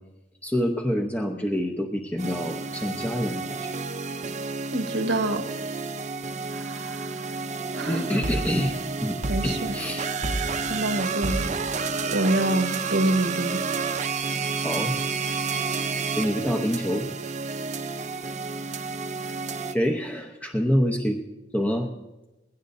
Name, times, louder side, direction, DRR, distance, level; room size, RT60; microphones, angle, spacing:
voice 1, 0.4-3.7 7.9-10.0 14.6-15.0 16.2-17.1 19.7-21.2 21.5-21.9, equal, 10° left, 0.8 m, -26 dB
sound 1, 2.2-19.7, right 4 dB, 40° right, 0.8 m, -30 dB
voice 2, 4.7-5.4 6.5-7.3 7.7-8.1 9.3-9.8 10.6-11.5 12.0-13.6, right 1 dB, 85° right, 1.3 m, -26 dB
20.5 x 16.5 x 2.7 m
head